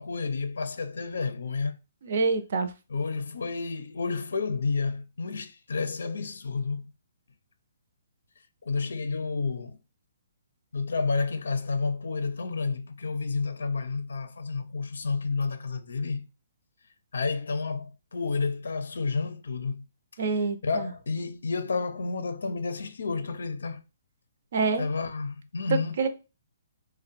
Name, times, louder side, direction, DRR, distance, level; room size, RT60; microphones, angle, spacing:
voice 1, 0.0-1.7 2.9-6.9 8.6-9.8 10.7-16.2 17.1-19.9 20.6-23.8 24.8-26.1, left 4 dB, 85° left, 0.5 m, -30 dB
voice 2, 2.0-2.7 20.2-20.9 24.5-24.9 25.7-26.1, right 4 dB, 50° right, 0.6 m, -26 dB
3.7 x 2.1 x 4.1 m
hypercardioid pair, 170°, 0 cm